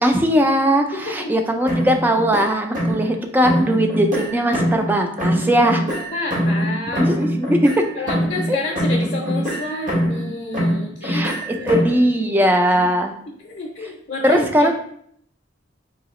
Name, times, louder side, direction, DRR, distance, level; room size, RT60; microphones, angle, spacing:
voice 1, 0.0-5.8 7.0-7.9 11.0-13.1 14.2-14.7, equal, 10° right, 5 dB, 0.3 m, -19 dB
voice 2, 0.9-1.4 5.4-7.2 7.9-11.3 11.6-12.3 13.4-14.7, left 2 dB, 45° left, -1 dB, 0.6 m, -30 dB
sound 1, 1.7-3.2 3.4-4.9 5.2-8.5 8.8-10.3 10.5-12.0, equal, 45° right, 0.8 m, -23 dB
3.8 x 2.8 x 3.0 m, 0.67 s
head